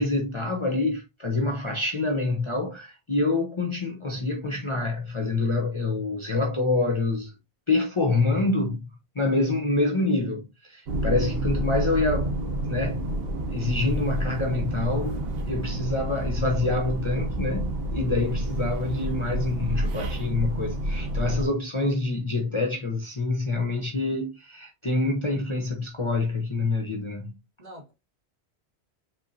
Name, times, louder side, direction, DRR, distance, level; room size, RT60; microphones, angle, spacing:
voice 1, 0.0-7.3 7.7-8.9 9.2-12.3 12.6-13.1 13.5-27.3, left 2 dB, 30° left, 0.8 m, -26 dB
sound 1, 10.9-21.5, right 1 dB, 65° right, 1.0 m, -29 dB
voice 2, 11.4-11.9 18.4-18.7 27.6-27.9, equal, 35° right, 2.4 m, -45 dB
5.5 x 3.5 x 2.6 m
omnidirectional pair, 1.1 m